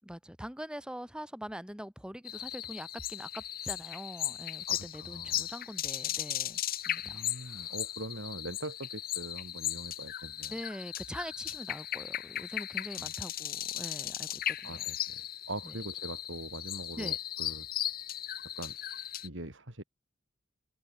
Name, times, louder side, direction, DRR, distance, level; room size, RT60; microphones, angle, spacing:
voice 1, 0.0-7.7 10.5-14.8 15.6-15.7 17.0-17.2, equal, 5° right, 6.2 m, -43 dB
sound 1, 2.3-19.3, left 12 dB, 50° left, 1.3 m, -37 dB
voice 2, 4.7-5.5 7.0-10.6 13.0-13.1 14.6-15.2 15.5-17.7 18.6-18.8 19.2-19.8, right 1 dB, 70° right, 4.9 m, -42 dB
open air
head